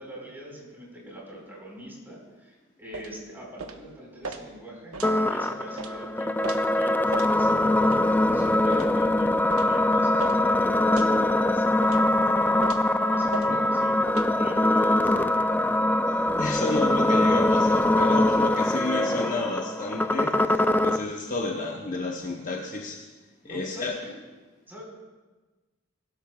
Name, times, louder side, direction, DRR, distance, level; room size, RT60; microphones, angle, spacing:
voice 1, 0.0-9.3 9.6-12.6 13.0-15.6 23.4-24.2 24.7-24.8, equal, 10° right, -4 dB, 4.8 m, -44 dB
sound 1, 2.9-3.1 3.6-3.8 4.2-4.4 4.9-5.1 5.8-5.9 6.4-6.6 7.1-7.3 7.8-8.0 8.7-8.9 9.5-9.7 10.2-10.4 10.9-11.1 11.8-12.1 12.6-12.9 13.3-13.5 14.1-14.3, right 4 dB, 85° right, 1.1 m, -37 dB
sound 2, 5.0-21.0, left 1 dB, 10° left, 0.3 m, -23 dB
voice 2, 16.4-23.0 23.5-24.0, left 2 dB, 40° left, 0 dB, 1.0 m, -31 dB
22.0 x 12.5 x 2.4 m, 1.3 s
head